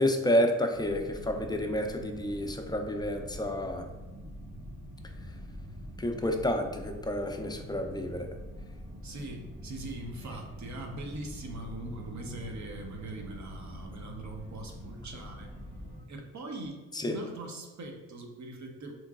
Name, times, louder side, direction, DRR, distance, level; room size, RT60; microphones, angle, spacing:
voice 1, 0.0-3.9 6.0-8.3 16.9-17.2, left 1 dB, 15° left, 4 dB, 0.4 m, -29 dB
sound 1, 0.7-16.0, equal, 20° right, 0.8 m, -44 dB
voice 2, 9.0-15.5 16.1-18.9, right 2 dB, 55° right, 2 dB, 0.7 m, -41 dB
3.6 x 3.0 x 2.4 m, 1.2 s
cardioid pair, 65°, 33 cm